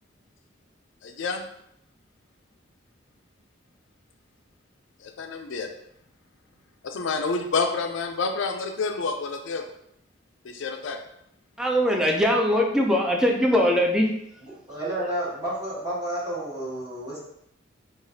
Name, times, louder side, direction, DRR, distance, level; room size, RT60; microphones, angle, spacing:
voice 1, 1.0-1.4 5.0-5.7 6.8-9.6 10.4-11.0, left 4 dB, 80° left, 4 dB, 0.4 m, -28 dB
voice 2, 11.6-14.1, equal, 5° right, 0 dB, 0.4 m, -21 dB
voice 3, 14.7-17.2, right 1 dB, 20° right, -9 dB, 1.2 m, -30 dB
4.8 x 2.4 x 2.7 m, 0.75 s
head